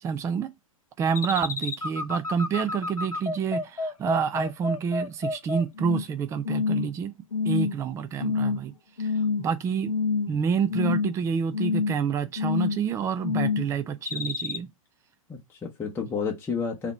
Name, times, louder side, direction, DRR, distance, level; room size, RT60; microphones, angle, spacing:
voice 1, 0.0-0.5 1.0-7.1 7.4-8.7 9.0-9.9 10.3-14.7, right 6 dB, 15° right, 0.5 m, -28 dB
sound 1, 1.2-6.1 6.5-6.9 7.3-7.8 8.2-8.6 9.0-9.5 9.9-10.4 10.7-11.2 11.5-12.0 12.4-12.9 13.2-13.7 14.1-14.6, left 4 dB, 85° left, 0.7 m, -28 dB
voice 2, 15.3-16.9, left 5 dB, 15° left, 0.9 m, -31 dB
4.0 x 3.0 x 4.2 m
figure-of-eight pair, 110°, 18 cm